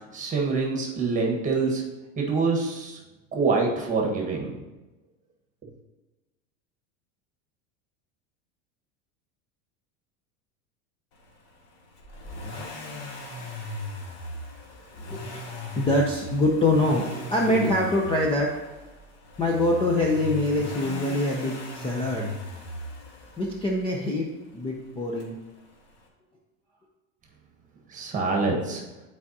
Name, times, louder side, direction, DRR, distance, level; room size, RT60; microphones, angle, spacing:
voice 1, 0.1-1.8 2.2-3.0 3.3-4.5 27.9-28.8, right 4 dB, 20° right, 0 dB, 1.4 m, -25 dB
Accelerating revving vroom, 12.0-23.9 25.2-25.3, left 2 dB, 65° left, 1.8 m, -37 dB
voice 2, 15.1-18.6 19.4-22.3 23.4-24.3 24.5-25.3, left 1 dB, 15° left, -2 dB, 0.6 m, -24 dB
11.0 x 4.8 x 2.8 m, 1.1 s
supercardioid pair, 155°, 37 cm